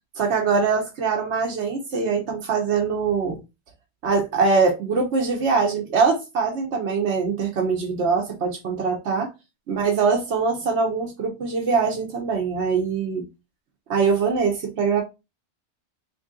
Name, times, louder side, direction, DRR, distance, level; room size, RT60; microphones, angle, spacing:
voice 1, 0.2-3.4 4.0-9.3 9.7-13.3 13.9-15.0, right 5 dB, 75° right, 1.1 m, -23 dB
3.2 x 2.7 x 3.6 m
omnidirectional pair, 1.2 m